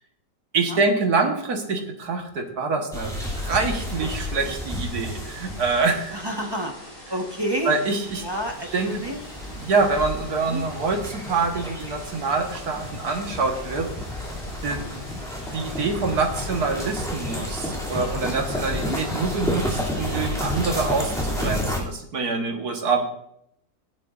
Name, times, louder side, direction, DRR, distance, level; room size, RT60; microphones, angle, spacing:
voice 1, 0.5-6.2 7.7-8.2 8.7-8.9 9.6-13.9 14.6-14.8 15.5-23.0, right 4 dB, 70° right, 2 dB, 2.1 m, -25 dB
sound 1, 2.9-6.2 8.0-21.8, left 1 dB, ahead, 2.8 m, -31 dB
sound 2, 3.1-21.6, equal, 20° left, 3.9 m, -44 dB
voice 2, 6.1-6.7 7.1-7.7 8.2-9.2 10.4-10.6 14.0-14.1 14.7-15.0 18.6-19.3 21.1-21.2, right 1 dB, 15° right, 1 dB, 1.3 m, -30 dB
18.5 x 10.5 x 2.6 m, 0.74 s
omnidirectional pair, 1.7 m